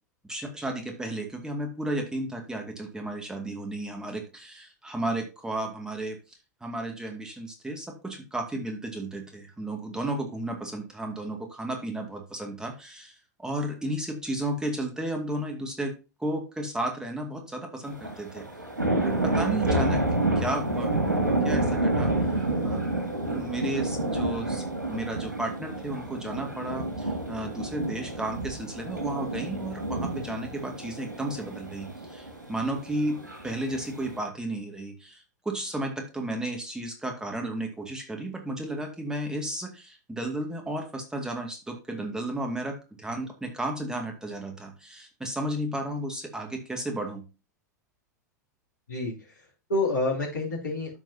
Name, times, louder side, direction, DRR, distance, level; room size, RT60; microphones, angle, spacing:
voice 1, 0.2-15.9 16.2-18.5 19.0-20.0 20.4-20.9 21.4-22.1 22.6-22.8 23.3-33.2 33.4-47.2, right 1 dB, 5° right, 3 dB, 2.2 m, -33 dB
sound 1, 17.8-34.2, right 2 dB, 90° right, 2.4 m, -29 dB
voice 2, 48.9-51.0, left 2 dB, 80° left, -4 dB, 3.3 m, -29 dB
13.0 x 4.6 x 2.8 m, 0.29 s
figure-of-eight pair, 95°, 10 cm